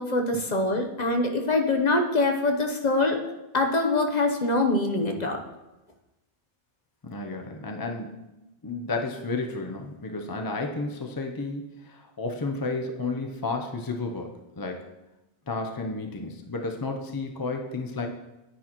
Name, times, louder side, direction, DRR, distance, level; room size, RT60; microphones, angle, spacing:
voice 1, 0.0-3.2 3.5-5.4, left 2 dB, 45° left, 3 dB, 1.0 m, -24 dB
voice 2, 7.0-8.2 8.6-14.9 15.5-18.1, left 3 dB, 25° left, 3 dB, 0.6 m, -32 dB
10.0 x 9.9 x 3.0 m, 1.0 s
omnidirectional pair, 1.1 m